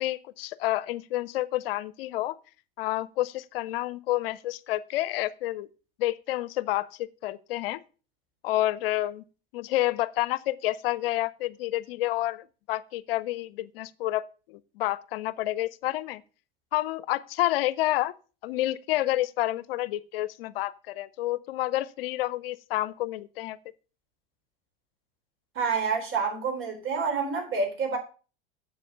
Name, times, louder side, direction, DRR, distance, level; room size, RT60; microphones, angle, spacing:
voice 1, 0.0-2.4 2.8-5.7 6.0-7.8 8.4-9.2 9.5-14.2 14.5-16.2 16.7-18.1 18.4-23.6, left 15 dB, 75° left, 0.6 m, -29 dB
voice 2, 25.6-28.0, right 5 dB, 45° right, 4.0 m, -28 dB
7.7 x 6.3 x 5.5 m
hypercardioid pair, 85°, 29 cm